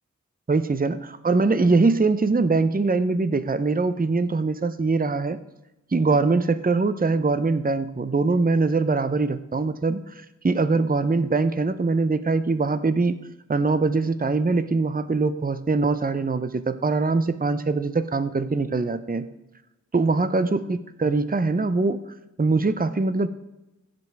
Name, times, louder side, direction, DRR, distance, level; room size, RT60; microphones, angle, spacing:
voice 1, 0.5-5.4 5.9-13.2 13.5-19.3 19.9-22.0 22.4-23.3, right 3 dB, 30° right, 12 dB, 0.6 m, -22 dB
15.5 x 5.3 x 4.6 m, 0.99 s
wide cardioid pair, 50°, 31 cm